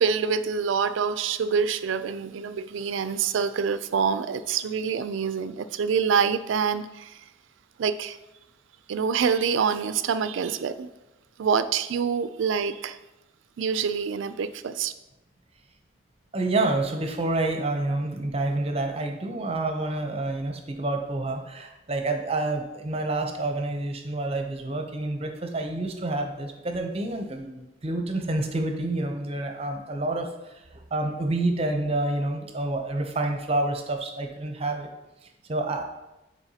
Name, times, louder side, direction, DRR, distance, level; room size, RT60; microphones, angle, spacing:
voice 1, 0.0-7.2 7.8-8.2 8.9-10.9 11.4-13.0 13.6-14.9, right 6 dB, 85° right, 12 dB, 0.4 m, -26 dB
voice 2, 16.3-34.9 35.5-35.8, right 2 dB, 30° right, 4 dB, 0.6 m, -28 dB
8.8 x 4.3 x 2.8 m, 0.98 s
head